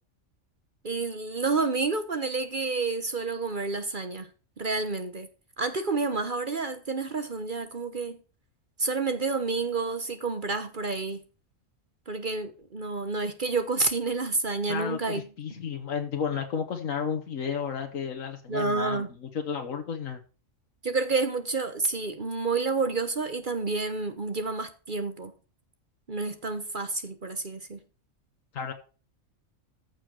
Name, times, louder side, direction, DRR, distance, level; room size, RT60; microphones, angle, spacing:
voice 1, 0.8-4.3 4.6-5.3 5.6-8.2 8.8-11.2 12.1-15.2 18.5-19.1 20.8-25.3 26.1-27.8, right 3 dB, 40° right, 1.1 m, -29 dB
voice 2, 14.7-20.2 28.5-28.7, left 7 dB, 85° left, 1.6 m, -32 dB
14.5 x 5.0 x 6.3 m
omnidirectional pair, 1.3 m